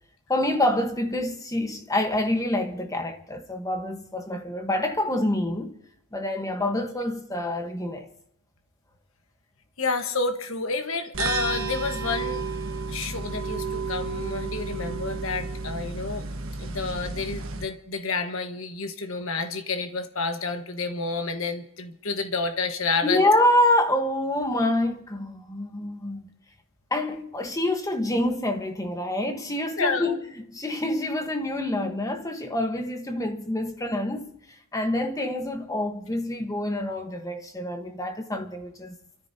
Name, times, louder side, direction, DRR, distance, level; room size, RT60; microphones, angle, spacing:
voice 1, 0.3-5.8 6.1-8.1 23.0-26.3 26.9-34.3 34.7-38.9, left 1 dB, 15° left, 1.1 m, -26 dB
voice 2, 9.8-12.4 12.9-16.2 16.6-23.2 29.8-30.2, left 4 dB, 65° left, 1.3 m, -29 dB
sound 1, 11.1-17.6, right 4 dB, 65° right, 1.4 m, -32 dB
30.0 x 13.5 x 2.8 m
head